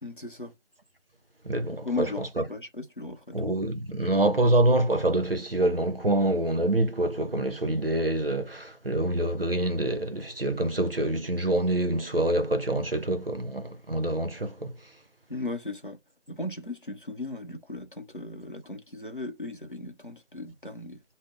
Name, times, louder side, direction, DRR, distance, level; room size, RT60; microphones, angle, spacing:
voice 1, 0.0-0.5 1.8-3.5 15.3-16.0 16.3-21.0, left 2 dB, 45° left, 0.7 m, -37 dB
voice 2, 1.4-2.4 3.3-14.7, right 1 dB, 50° right, 0.6 m, -26 dB
2.5 x 2.0 x 3.7 m
figure-of-eight pair, 180°, 36 cm